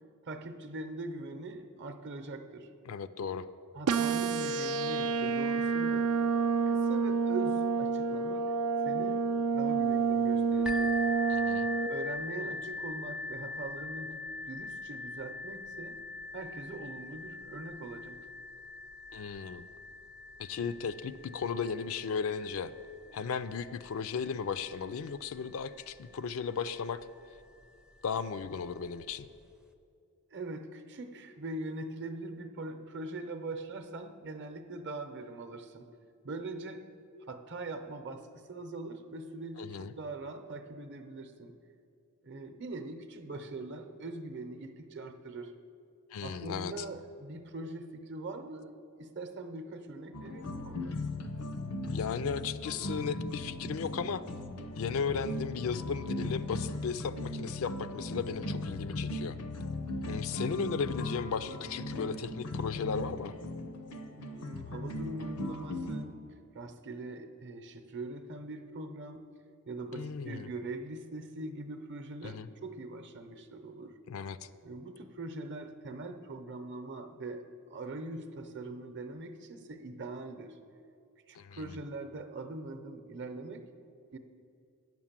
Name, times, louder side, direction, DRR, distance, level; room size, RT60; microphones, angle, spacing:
voice 1, 0.2-2.7 3.7-6.1 6.7-8.5 8.8-9.3 9.5-11.0 11.4-11.5 11.9-16.0 16.3-18.2 30.3-35.9 36.2-36.8 37.3-41.5 42.2-45.5 46.2-50.9 64.1-66.2 66.5-69.2 69.7-74.0 74.6-80.6 81.3-83.7 84.1-84.2, right 2 dB, 50° right, 7 dB, 0.7 m, -42 dB
voice 2, 2.9-3.5 11.3-11.7 19.1-19.6 20.4-22.7 23.1-27.0 28.0-29.3 39.6-39.9 46.1-46.8 51.9-54.2 54.8-59.4 60.1-63.4 69.9-70.5 72.2-72.5 74.1-74.5 81.3-81.6, left 6 dB, 65° left, 13 dB, 0.4 m, -35 dB
sound 1, 3.9-11.9, right 5 dB, 85° right, 0.5 m, -29 dB
sound 2, 10.7-26.2 27.0-27.1 27.6-27.7, left 3 dB, 5° right, 0.4 m, -42 dB
sound 3, 50.1-66.1, left 2 dB, 85° left, 0.7 m, -38 dB
9.1 x 6.0 x 7.4 m, 2.5 s
head